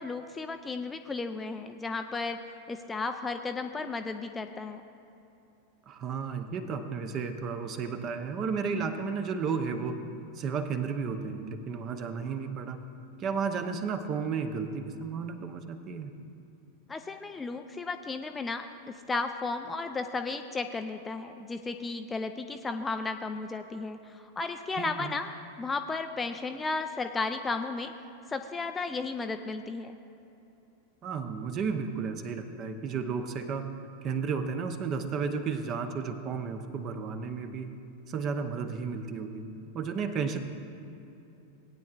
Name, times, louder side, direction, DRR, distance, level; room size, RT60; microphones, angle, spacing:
voice 1, 0.0-2.4 2.7-4.8 16.9-25.3 25.6-27.9 28.3-30.0, left 3 dB, 15° left, 7 dB, 0.4 m, -34 dB
voice 2, 5.9-10.0 10.3-12.8 13.2-16.1 24.8-25.1 31.0-33.7 34.0-37.7 38.1-39.4 39.7-40.4, right 5 dB, 35° right, 8 dB, 0.8 m, -33 dB
18.5 x 9.3 x 2.5 m, 2.9 s
figure-of-eight pair, 90°, 0 cm